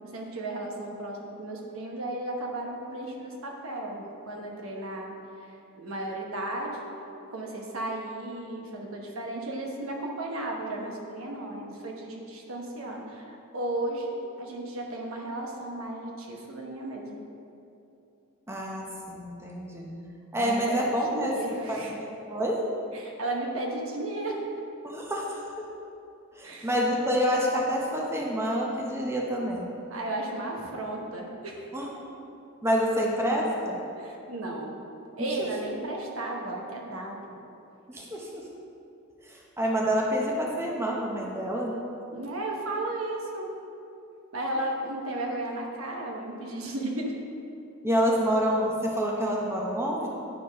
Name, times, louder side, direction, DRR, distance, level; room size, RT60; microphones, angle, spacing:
voice 1, 0.0-6.9 7.3-14.1 14.4-17.2 20.4-22.0 22.9-24.4 26.4-26.7 29.9-31.7 34.0-34.7 35.2-37.4 42.1-43.5 44.3-47.1, right 1 dB, 75° right, 0 dB, 1.2 m, -34 dB
voice 2, 18.5-19.9 20.3-22.7 24.8-25.7 26.4-29.7 31.7-31.9 32.6-33.8 35.4-35.5 37.9-38.4 39.2-41.7 47.8-50.1, equal, 10° right, -2 dB, 0.8 m, -28 dB
9.3 x 4.4 x 5.2 m, 2.7 s
head